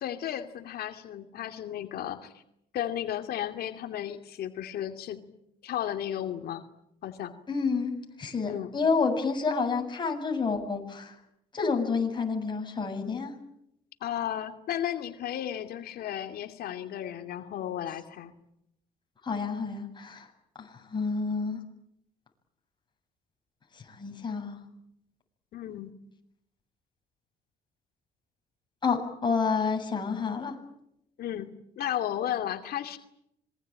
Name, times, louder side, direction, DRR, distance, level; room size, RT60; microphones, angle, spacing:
voice 1, 0.0-2.4 2.7-5.2 5.6-6.6 7.0-7.3 8.4-8.7 14.0-18.3 25.5-25.9 31.2-31.5 31.8-33.0, left 11 dB, 65° left, 6 dB, 2.6 m, -34 dB
voice 2, 7.5-11.1 11.5-13.3 19.2-20.3 20.6-21.6 23.7-24.6 28.8-30.5, left 4 dB, 25° left, 3 dB, 7.7 m, -29 dB
26.5 x 22.5 x 8.9 m, 0.78 s
cardioid pair, 110°, 17 cm